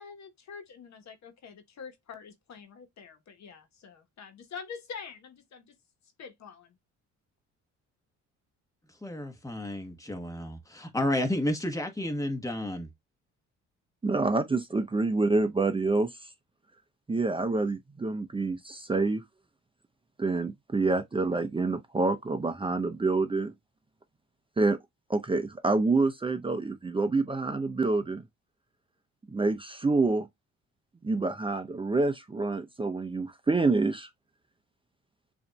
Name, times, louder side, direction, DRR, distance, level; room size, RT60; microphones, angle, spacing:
voice 1, 0.0-5.7 6.2-6.8, left 6 dB, 65° left, 1.2 m, -45 dB
voice 2, 9.0-12.9, left 1 dB, 10° left, 1.2 m, -31 dB
voice 3, 14.0-16.3 17.1-19.2 20.2-23.5 24.6-24.8 25.1-28.2 29.3-30.3 31.0-34.1, right 3 dB, 15° right, 0.6 m, -27 dB
6.9 x 2.7 x 2.2 m
cardioid pair, 90°, 30 cm